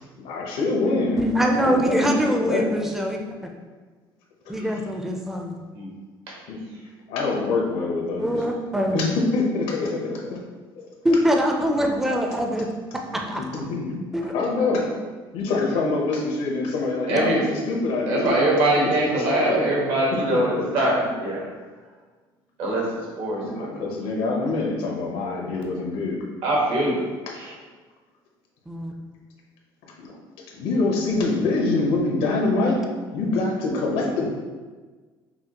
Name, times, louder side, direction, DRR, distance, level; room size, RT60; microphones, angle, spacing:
voice 1, 0.2-1.2 1.5-2.7 4.5-4.7 6.5-6.6 7.1-8.4 8.9-10.4 11.8-11.9 12.9-14.0 14.3-14.9 15.3-18.5 19.0-19.7 20.1-20.4 23.4-26.3 30.0-30.1 30.5-34.4, left 3 dB, 90° left, -1 dB, 0.9 m, -25 dB
voice 2, 1.2-3.5 4.5-5.6 8.2-9.1 11.0-12.7 13.3-13.4 14.1-14.3 28.7-28.9, equal, 5° right, 1 dB, 0.4 m, -23 dB
voice 3, 17.1-17.4 18.1-21.5 22.6-23.9 26.4-27.1 27.3-27.5, right 1 dB, 70° right, -4 dB, 1.3 m, -23 dB
5.6 x 2.3 x 2.9 m, 1.4 s
cardioid pair, 120°, 10 cm